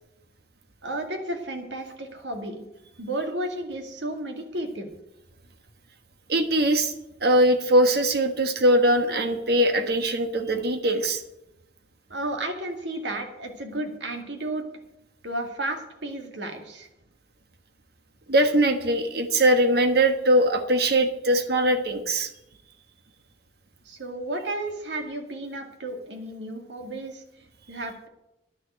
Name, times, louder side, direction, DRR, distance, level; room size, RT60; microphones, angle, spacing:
voice 1, 0.8-2.6 3.0-4.9 12.1-14.6 15.2-16.9 23.9-27.2 27.7-28.1, right 1 dB, 85° right, 4 dB, 2.2 m, -33 dB
voice 2, 6.3-6.9 7.2-11.2 18.3-22.3, right 1 dB, 60° right, 7 dB, 1.5 m, -21 dB
10.5 x 6.8 x 9.3 m, 0.89 s
head